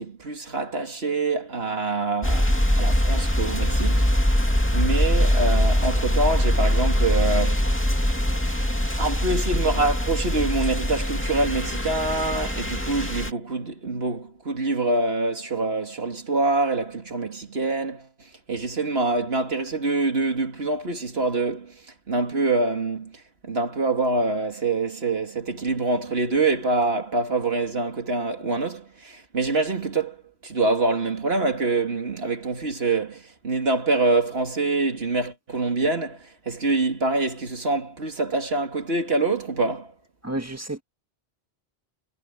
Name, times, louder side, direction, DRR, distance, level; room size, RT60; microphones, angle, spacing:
voice 1, 0.0-4.0 4.7-7.7 9.0-18.1 18.5-21.8 22.1-30.2 30.4-39.9, right 3 dB, 75° right, 2.6 m, -25 dB
sound 1, 2.2-13.3, equal, 10° left, 2.4 m, -22 dB
voice 2, 40.2-40.8, right 1 dB, 15° right, 1.7 m, -30 dB
omnidirectional pair, 1.1 m